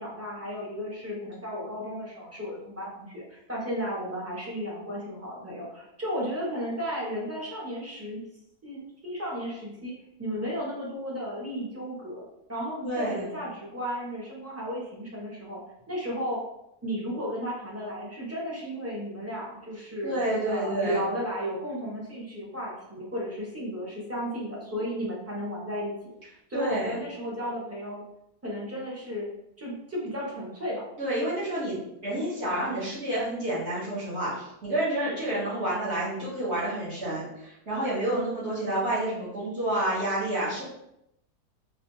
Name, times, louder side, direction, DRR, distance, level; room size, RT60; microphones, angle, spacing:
voice 1, 0.0-8.2 8.6-9.9 10.2-12.2 12.5-15.6 15.9-16.4 16.8-20.2 20.4-26.1 26.5-28.0 28.4-29.3 29.6-30.8, equal, 10° right, -5 dB, 0.8 m, -34 dB
voice 2, 12.8-13.3 20.0-21.0 26.5-27.0 31.0-31.8 32.0-40.6, right 1 dB, 45° right, -10 dB, 1.7 m, -29 dB
4.1 x 2.7 x 3.1 m, 0.80 s
omnidirectional pair, 1.7 m